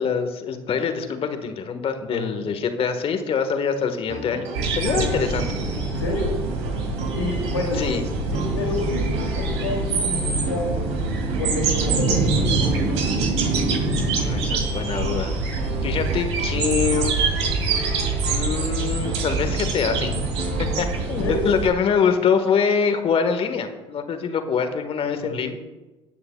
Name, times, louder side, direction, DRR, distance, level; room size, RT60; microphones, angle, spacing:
voice 1, 0.0-4.5 4.7-5.6 7.8-8.0 14.1-15.3 15.8-17.1 18.3-20.2 20.6-25.5, left 6 dB, 40° left, 7 dB, 1.5 m, -24 dB
voice 2, 2.1-2.5 4.9-5.1 6.0-6.4 7.1-7.8 8.3-10.8 11.4-12.9 21.2-21.5 25.2-25.5, left 3 dB, 85° left, 0 dB, 2.7 m, -29 dB
sound 1, 4.1-21.2, right 2 dB, 50° right, 2.4 m, -35 dB
sound 2, 4.5-21.7, right 3 dB, 75° right, 2.2 m, -24 dB
19.0 x 9.5 x 2.3 m, 1.1 s
hypercardioid pair, 65°, 14 cm